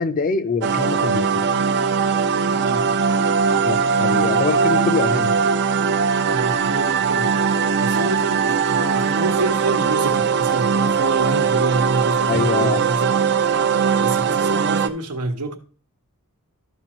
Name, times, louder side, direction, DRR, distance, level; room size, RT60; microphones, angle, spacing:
voice 1, 0.0-1.5 3.6-5.3 12.3-12.8, left 4 dB, 40° left, 0.6 m, -24 dB
sound 1, 0.6-14.9, right 6 dB, 50° right, 0.5 m, -20 dB
voice 2, 6.3-13.3 14.0-15.6, right 2 dB, 85° right, 1.0 m, -27 dB
12.0 x 6.2 x 3.0 m
head